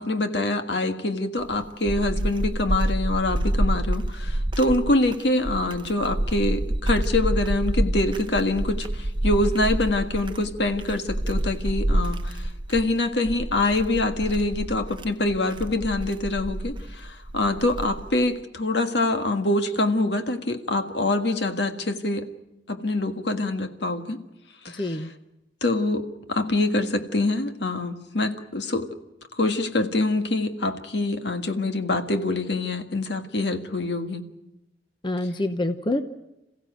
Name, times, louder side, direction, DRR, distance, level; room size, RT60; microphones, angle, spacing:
voice 1, 0.0-22.3 22.7-24.2 24.7-25.1 25.6-28.9 29.4-34.2, left 2 dB, 70° left, 7 dB, 1.7 m, -25 dB
sound 1, 1.4-18.2, right 1 dB, 25° right, 0.8 m, -28 dB
voice 2, 24.8-25.1 35.0-36.0, left 1 dB, 25° left, 8 dB, 0.9 m, -26 dB
27.5 x 15.5 x 9.3 m, 0.95 s
head